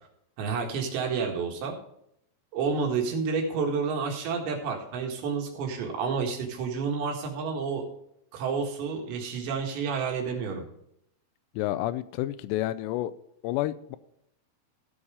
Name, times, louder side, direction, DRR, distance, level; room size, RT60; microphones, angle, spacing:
voice 1, 0.4-1.7 2.5-7.9 8.3-10.6, right 5 dB, 85° right, 2 dB, 4.0 m, -30 dB
voice 2, 11.6-13.1 13.4-14.0, left 15 dB, 90° left, 15 dB, 2.8 m, -29 dB
16.0 x 5.6 x 4.9 m, 0.75 s
omnidirectional pair, 4.9 m